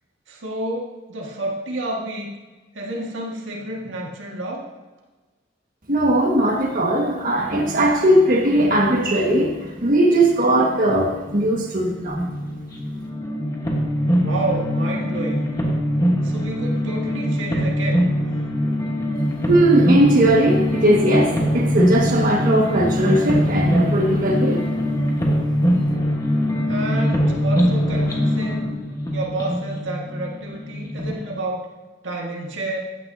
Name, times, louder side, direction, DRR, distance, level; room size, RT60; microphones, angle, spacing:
voice 1, 0.3-2.3 2.7-4.7 14.2-15.5 16.2-18.1 26.7-28.8 29.1-31.7 32.0-32.8, right 1 dB, 90° right, -2 dB, 1.8 m, -29 dB
voice 2, 5.9-12.2 19.5-24.7, right 1 dB, 50° right, -1 dB, 1.7 m, -18 dB
sound 1, 12.1-31.2, equal, 20° left, 1.3 m, -22 dB
14.0 x 9.5 x 2.8 m, 1.3 s
head